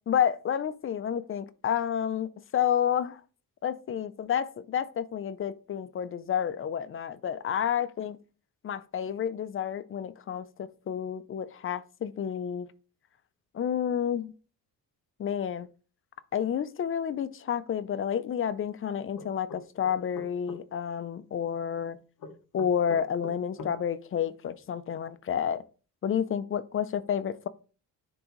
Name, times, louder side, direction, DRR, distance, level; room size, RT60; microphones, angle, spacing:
voice 1, 0.1-3.2 3.6-8.2 8.6-12.7 13.5-14.3 15.2-15.7 16.3-22.0 22.5-25.6 26.0-27.5, left 8 dB, 35° left, 0.4 m, -30 dB
sound 1, 19.2-20.6 22.2-23.8, left 3 dB, 55° left, 1.0 m, -42 dB
9.8 x 3.6 x 3.1 m
cardioid pair, 140°, 37 cm